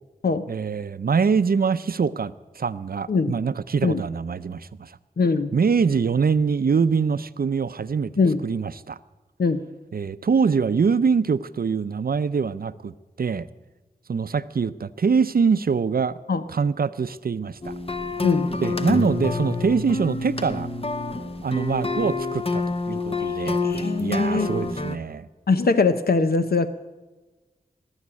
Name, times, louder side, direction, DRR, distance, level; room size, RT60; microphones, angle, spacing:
voice 1, 0.5-4.9 5.5-8.1 8.4-9.0 9.9-13.5 14.1-16.2 16.5-17.7 18.6-20.7 21.4-23.6 24.0-25.3, right 5 dB, 70° right, 15 dB, 0.5 m, -24 dB
voice 2, 5.2-5.5 8.2-8.4 9.4-9.7 16.3-16.4 18.2-18.5 23.6-24.6 25.5-26.7, left 4 dB, 75° left, 10 dB, 0.7 m, -21 dB
sound 1, 17.6-25.0, left 3 dB, 35° left, 0.9 m, -27 dB
19.0 x 7.2 x 8.5 m, 1.2 s
wide cardioid pair, 50°, 16 cm